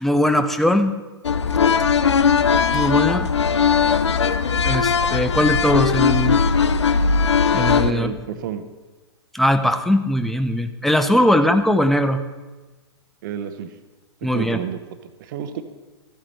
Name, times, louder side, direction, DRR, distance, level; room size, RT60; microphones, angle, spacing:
voice 1, 0.0-1.0 2.7-3.3 4.6-6.4 7.5-8.1 9.3-12.2 14.2-14.6, left 1 dB, ahead, 8 dB, 0.5 m, -20 dB
sound 1, 1.2-7.9, left 6 dB, 80° left, 0.5 m, -19 dB
voice 2, 7.8-8.6 11.3-11.4 13.2-13.7 14.3-15.6, right 9 dB, 45° right, 10 dB, 0.8 m, -31 dB
14.0 x 8.6 x 3.3 m, 1.2 s
figure-of-eight pair, 115°, 14 cm